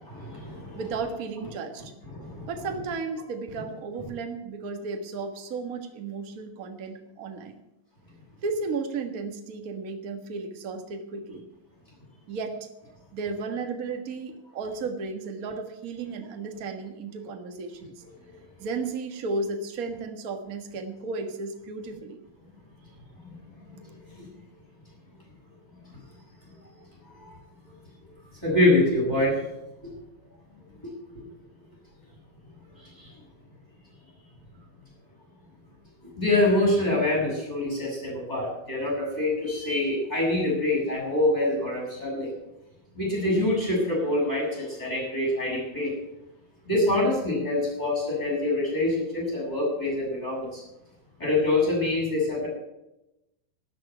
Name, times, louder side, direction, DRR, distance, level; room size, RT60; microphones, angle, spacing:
voice 1, 0.0-0.8 2.1-2.5 23.2-23.3 23.7-23.8 24.1-24.3 27.2-27.4 28.4-29.4 29.8-29.9 30.8-30.9 32.8-33.1 36.2-42.3 42.9-45.9 46.7-50.6 51.2-52.5, left 2 dB, 10° left, -2 dB, 7.5 m, -25 dB
voice 2, 0.7-1.9 2.5-7.6 8.4-11.4 12.3-12.6 13.1-18.0 18.6-22.2, right 4 dB, 60° right, 5 dB, 0.9 m, -34 dB
13.0 x 8.3 x 9.3 m, 0.91 s
omnidirectional pair, 4.1 m